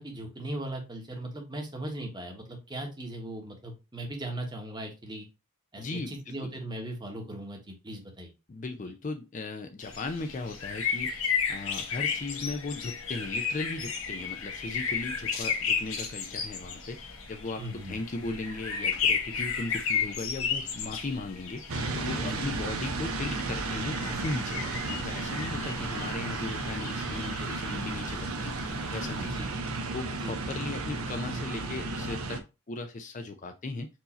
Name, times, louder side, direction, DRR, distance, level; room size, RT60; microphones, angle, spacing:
voice 1, 0.0-5.3 5.7-8.3 17.6-18.0 22.3-22.5 29.3-29.5 30.2-30.4, right 1 dB, 20° right, 1 dB, 1.1 m, -38 dB
voice 2, 5.8-6.5 8.5-11.2 11.5-17.0 17.3-28.6 28.9-29.3 29.9-33.9, left 3 dB, 35° left, 6 dB, 0.4 m, -37 dB
sound 1, 9.8-29.5, left 6 dB, 70° left, 1.2 m, -34 dB
sound 2, 21.7-32.4, right 3 dB, 75° right, 0.8 m, -33 dB
4.6 x 2.7 x 4.2 m, 0.27 s
head